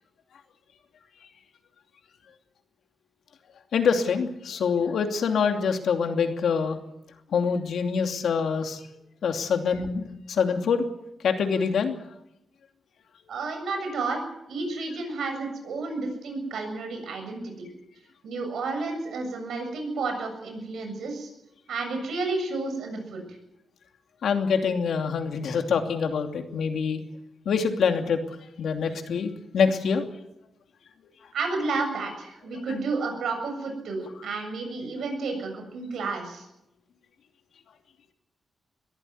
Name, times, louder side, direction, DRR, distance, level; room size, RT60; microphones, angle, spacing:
voice 1, 3.7-6.8 7.3-8.8 9.2-10.8 11.2-12.0 24.2-27.0 27.4-28.2 28.6-30.0, left 6 dB, 80° left, 5 dB, 2.7 m, -25 dB
voice 2, 13.3-14.2 14.5-17.7 18.2-21.3 21.7-23.2 31.3-36.5, right 3 dB, 85° right, 5 dB, 7.3 m, -31 dB
22.0 x 14.5 x 9.6 m, 0.84 s
wide cardioid pair, 120°, 0 cm